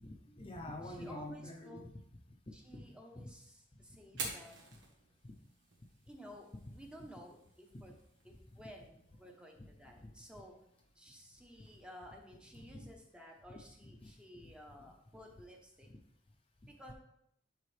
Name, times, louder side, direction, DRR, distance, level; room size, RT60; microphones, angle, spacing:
voice 1, 0.0-1.9 2.7-2.9 3.2-3.3 4.1-4.2 9.6-9.7 12.5-12.9 13.8-14.1, left 1 dB, 30° left, 2 dB, 0.6 m, -47 dB
voice 2, 0.8-1.9 2.5-4.5 6.1-7.9 8.2-10.5 11.0-15.9 16.7-16.9, equal, 5° right, 1 dB, 0.9 m, -54 dB
Fire, 4.0-12.0, right 4 dB, 90° right, 1.5 m, -51 dB
11.0 x 3.7 x 3.3 m, 0.75 s
head